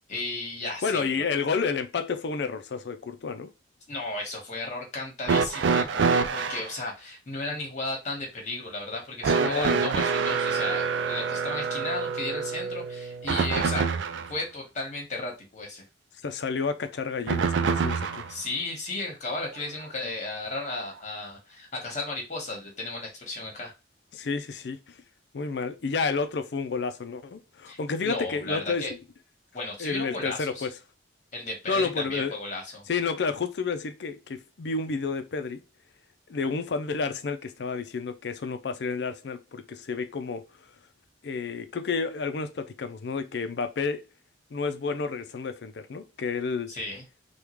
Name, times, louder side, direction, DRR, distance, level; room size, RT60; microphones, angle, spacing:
voice 1, 0.1-1.2 3.9-15.8 18.3-23.7 27.7-28.9 29.5-30.7 31.3-32.9 46.7-47.0, left 2 dB, 40° left, 1.1 m, -35 dB
voice 2, 0.8-3.5 9.4-9.9 16.2-18.2 24.1-25.0 25.3-29.0 29.8-30.7 31.7-32.4 32.9-35.6 36.3-40.7 41.2-44.0 44.5-46.8, left 4 dB, 65° left, 0.4 m, -30 dB
sound 1, 5.2-6.7 9.2-14.3 17.3-18.3 19.6-19.7 20.7-20.8, right 5 dB, 85° right, 0.4 m, -26 dB
3.5 x 2.3 x 3.0 m
head